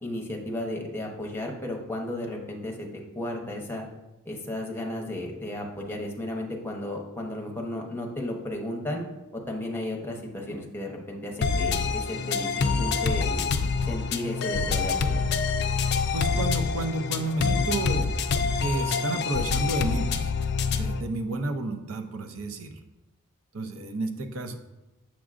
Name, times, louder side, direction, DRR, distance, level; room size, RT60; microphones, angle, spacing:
voice 1, 0.0-2.9 3.1-3.8 4.3-9.0 9.5-12.5 12.8-13.4 13.9-15.2, left 1 dB, 10° left, 0 dB, 0.8 m, -34 dB
sound 1, 11.4-21.0, left 5 dB, 50° left, 0.4 m, -26 dB
voice 2, 16.1-18.1 18.6-20.3 20.7-22.8 23.5-24.6, right 2 dB, 75° right, 5 dB, 0.6 m, -31 dB
7.2 x 6.0 x 2.5 m, 1.0 s
head